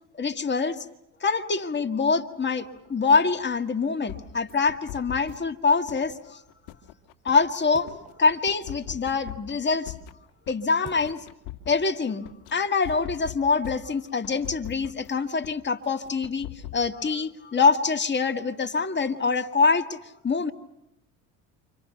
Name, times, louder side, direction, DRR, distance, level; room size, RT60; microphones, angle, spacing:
voice 1, 0.2-0.8 1.2-6.4 7.3-7.9 8.2-9.9 10.5-11.2 11.7-20.0 20.2-20.5, left 4 dB, 30° left, 7 dB, 1.9 m, -25 dB
sound 1, 2.4-11.2, right 5 dB, 20° right, 6.1 m, -54 dB
sound 2, 4.1-5.5 5.9-7.9 8.3-10.5 10.9-12.5 12.8-15.1 15.4-15.5 15.8-16.8, left 13 dB, 75° left, 2.1 m, -40 dB
29.5 x 25.5 x 5.8 m, 0.85 s
supercardioid pair, 85°, 37 cm